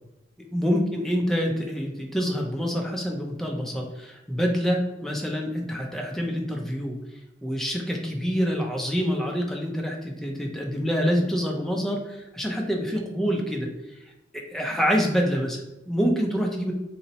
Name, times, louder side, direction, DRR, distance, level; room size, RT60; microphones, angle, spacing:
voice 1, 0.5-7.0 7.4-13.7 14.3-16.7, equal, ahead, 0 dB, 0.5 m, -26 dB
4.0 x 2.1 x 2.7 m, 1.0 s
head